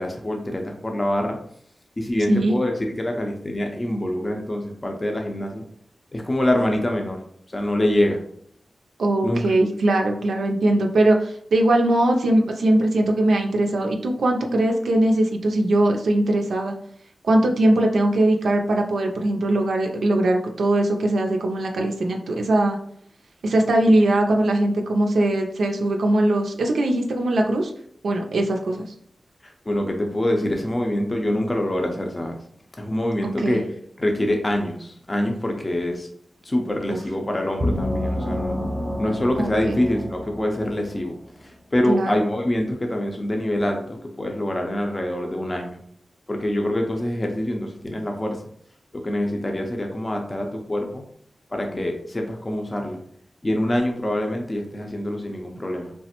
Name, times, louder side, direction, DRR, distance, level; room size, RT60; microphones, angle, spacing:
voice 1, 0.0-1.4 2.0-5.6 6.1-7.2 7.5-8.2 9.2-9.4 29.4-32.4 32.8-33.6 34.0-36.1 36.4-38.6 39.0-41.1 41.4-45.8 46.3-48.4 49.0-51.0 51.5-53.0 53.4-55.9, left 1 dB, 35° left, 2 dB, 0.5 m, -25 dB
voice 2, 9.0-16.7 17.2-22.8 23.4-27.7 28.0-28.9 33.4-33.6 36.9-37.0 39.4-39.8 41.9-42.1, right 1 dB, 85° right, 2 dB, 0.3 m, -20 dB
sound 1, 37.6-41.2, left 1 dB, 30° right, 0.7 m, -28 dB
3.2 x 2.0 x 2.8 m, 0.65 s
cardioid pair, 40°, 0 cm